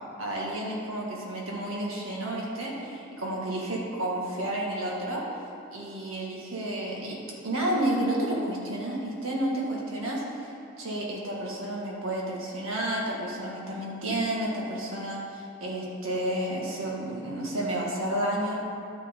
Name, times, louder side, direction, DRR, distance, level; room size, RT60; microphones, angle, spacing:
voice 1, 0.0-5.2 5.7-10.5 10.8-18.6, right 1 dB, 80° right, -3 dB, 1.8 m, -31 dB
11.5 x 6.2 x 3.8 m, 2.6 s
head